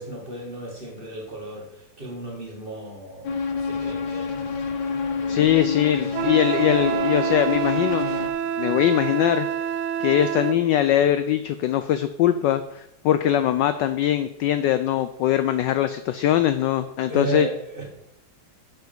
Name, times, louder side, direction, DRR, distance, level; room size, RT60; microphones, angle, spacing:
voice 1, 0.0-4.6 5.1-5.5 8.6-8.9 17.1-17.8, right 3 dB, 25° right, -1 dB, 2.1 m, -35 dB
sound 1, 3.2-8.3, left 5 dB, 60° left, 1.6 m, -28 dB
voice 2, 5.3-8.1 8.6-9.5 10.0-17.5, left 11 dB, 75° left, 11 dB, 1.0 m, -21 dB
Wind instrument woodwind instrument, 6.1-10.6, right 9 dB, 85° right, 1.5 m, -27 dB
10.0 x 5.8 x 5.2 m, 0.83 s
omnidirectional pair, 2.3 m